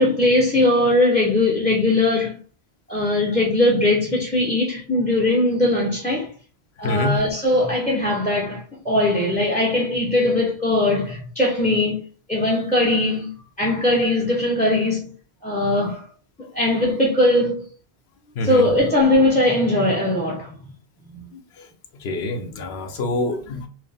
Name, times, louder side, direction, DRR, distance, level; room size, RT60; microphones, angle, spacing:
voice 1, 0.0-2.4 2.9-6.3 6.8-12.0 12.3-13.3 13.6-15.1 15.4-16.0 16.5-17.7 18.4-20.5 21.1-21.2, left 1 dB, 10° left, 0.7 m, -20 dB
voice 2, 6.8-7.2 18.4-18.7 22.0-23.7, left 2 dB, 90° left, 1.0 m, -25 dB
4.6 x 2.1 x 3.4 m
omnidirectional pair, 1.1 m